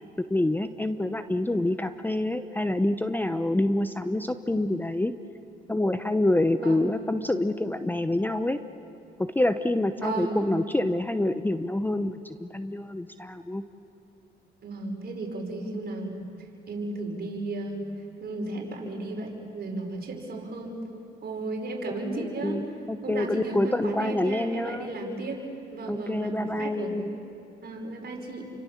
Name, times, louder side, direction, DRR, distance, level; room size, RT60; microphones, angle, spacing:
voice 1, 0.3-5.1 5.7-8.6 9.2-13.6 22.4-24.9 25.9-27.2, left 1 dB, 10° left, 10 dB, 0.9 m, -27 dB
voice 2, 6.6-7.0 9.9-10.5 14.6-16.3 16.7-17.8 18.2-20.8 21.2-22.6 23.0-25.4 25.7-26.9 27.6-28.4, right 2 dB, 50° right, 1 dB, 5.6 m, -34 dB
29.5 x 25.0 x 7.4 m, 2.6 s
cardioid pair, 90°, 20 cm